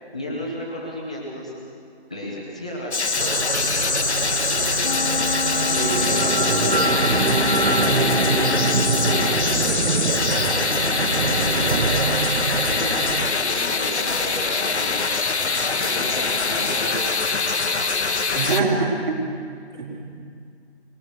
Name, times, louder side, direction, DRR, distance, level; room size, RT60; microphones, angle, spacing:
voice 1, 0.1-1.5 2.1-3.7 5.5-12.1 12.4-14.9 15.3-15.4 15.8-17.7 18.3-18.6, equal, 5° left, -5 dB, 0.9 m, -33 dB
sound 1, 2.9-18.6, left 4 dB, 75° left, 1.3 m, -23 dB
sound 2, 3.2-13.3, right 4 dB, 65° right, 1.0 m, -24 dB
voice 2, 4.5-5.0 5.7-6.0 18.3-19.2 19.7-20.1, right 4 dB, 40° right, -5 dB, 4.1 m, -25 dB
Wind instrument woodwind instrument, 4.8-9.4, left 4 dB, 50° left, 0.5 m, -29 dB
22.5 x 21.5 x 6.3 m, 2.2 s
figure-of-eight pair, 170°, 34 cm